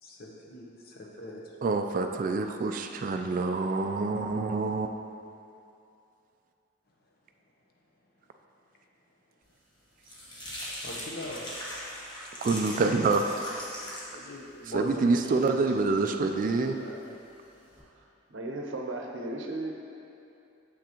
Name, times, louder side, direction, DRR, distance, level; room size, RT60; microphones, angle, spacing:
voice 1, 0.0-1.6 10.8-11.5 14.1-17.1, equal, 50° left, -2 dB, 0.8 m, -42 dB
voice 2, 1.6-4.9 12.4-13.2 14.7-16.8, right 3 dB, 45° right, 5 dB, 0.3 m, -26 dB
sound 1, 9.5-17.8, equal, 25° left, 1.1 m, -42 dB
voice 3, 17.8-19.7, right 2 dB, 85° right, 1 dB, 0.7 m, -36 dB
7.8 x 6.0 x 2.9 m, 2.7 s
head